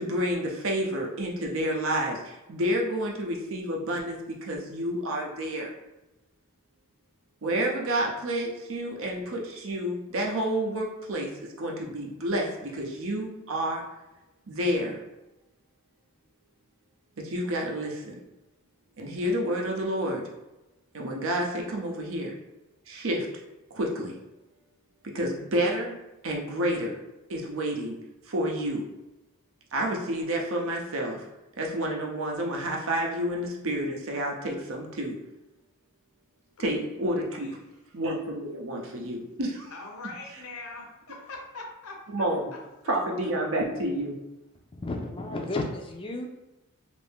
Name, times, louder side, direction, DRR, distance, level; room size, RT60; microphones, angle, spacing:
voice 1, 0.0-5.7 7.4-13.8 14.5-15.0 17.2-18.2 19.0-20.2 20.9-22.4 22.9-23.3 23.7-24.1 25.0-26.0 26.2-27.0 27.3-28.0 28.3-28.9 29.7-31.3 31.6-35.2 36.6-37.6 37.9-39.7 42.1-42.5 42.9-44.2, right 1 dB, 65° right, 0 dB, 0.6 m, -29 dB
voice 2, 39.7-42.3 42.5-42.6, left 3 dB, 80° left, 1 dB, 0.7 m, -42 dB
voice 3, 44.7-46.3, left 2 dB, 25° left, 3 dB, 0.4 m, -32 dB
2.7 x 2.6 x 3.5 m, 0.98 s
head